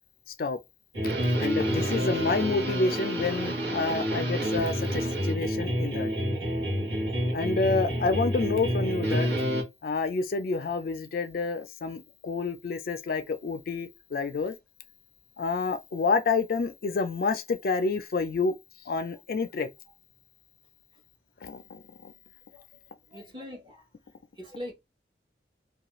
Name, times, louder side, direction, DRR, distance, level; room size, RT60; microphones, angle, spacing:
sound 1, 0.9-9.6, equal, 80° right, 1.1 m, -28 dB
voice 1, 1.2-6.1 7.3-9.3 9.8-14.5 15.4-18.5 18.9-19.7 21.4-22.1, left 4 dB, 55° left, 0.3 m, -29 dB
voice 2, 23.1-23.8 24.4-24.7, left 1 dB, 25° right, 0.8 m, -41 dB
2.4 x 2.3 x 2.9 m
head